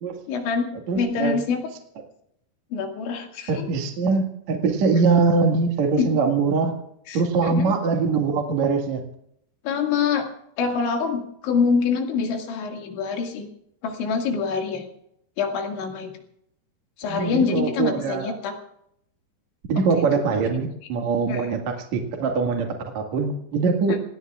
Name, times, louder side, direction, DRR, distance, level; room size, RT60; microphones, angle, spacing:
voice 1, 0.3-0.7 1.0-1.6 2.7-3.7 6.0-6.1 7.1-7.6 9.6-10.3 10.6-13.5 13.8-14.9 15.4-16.1 17.0-18.5 21.3-21.5, left 5 dB, 85° left, 2 dB, 4.5 m, -25 dB
voice 2, 0.9-1.4 3.5-6.7 7.1-9.0 17.1-18.3 19.7-24.0, right 4 dB, 50° right, 2 dB, 2.5 m, -22 dB
27.5 x 18.0 x 2.5 m, 0.74 s
omnidirectional pair, 5.2 m